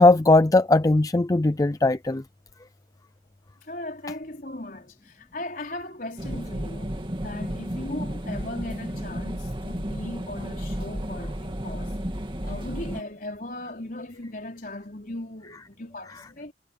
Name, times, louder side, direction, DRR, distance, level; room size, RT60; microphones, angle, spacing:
voice 1, 0.0-2.2, left 2 dB, 20° left, 0.4 m, -19 dB
voice 2, 3.6-11.9 12.4-16.5, left 1 dB, 50° left, 4.8 m, -38 dB
sound 1, 6.2-13.0, equal, 30° right, 2.3 m, -32 dB
head